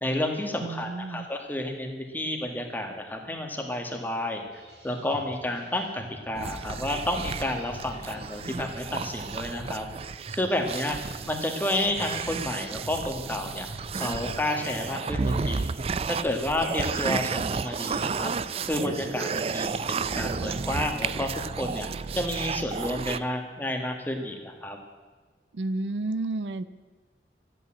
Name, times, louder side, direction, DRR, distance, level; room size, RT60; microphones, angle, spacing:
voice 1, 0.0-4.4 4.8-9.9 10.3-11.0 11.3-13.7 14.0-15.7 16.1-18.3 18.6-21.9 22.2-24.8, left 1 dB, 10° left, 3 dB, 1.6 m, -30 dB
voice 2, 0.6-1.3 10.9-11.0 25.5-26.6, right 2 dB, 85° right, 14 dB, 0.6 m, -31 dB
sound 1, 4.5-21.1, right 1 dB, 70° right, 3.0 m, -46 dB
sound 2, 6.3-23.2, right 5 dB, 35° right, 0.3 m, -32 dB
13.5 x 8.8 x 8.7 m, 1.4 s
head